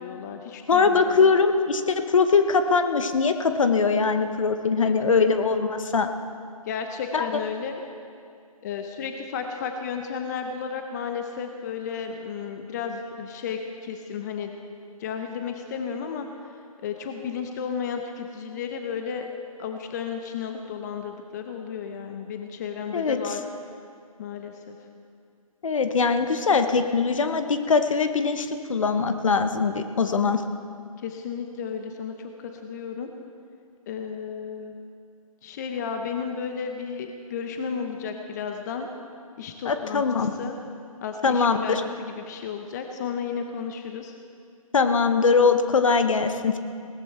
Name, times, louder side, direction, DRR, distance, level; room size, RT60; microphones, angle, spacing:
voice 1, 0.0-1.3 4.8-5.4 6.7-7.8 8.6-14.5 15.0-19.3 19.6-23.4 24.2-24.8 31.0-33.1 33.9-34.8 35.4-38.9 39.4-40.0 40.4-40.6 41.0-44.1, left 6 dB, 30° left, 5 dB, 0.9 m, -33 dB
voice 2, 0.7-6.1 7.1-7.2 22.9-23.4 25.6-30.4 39.6-40.3 41.2-41.8 44.7-46.6, left 5 dB, 60° left, 8 dB, 1.2 m, -22 dB
19.0 x 14.0 x 4.5 m, 2.3 s
figure-of-eight pair, 145°, 19 cm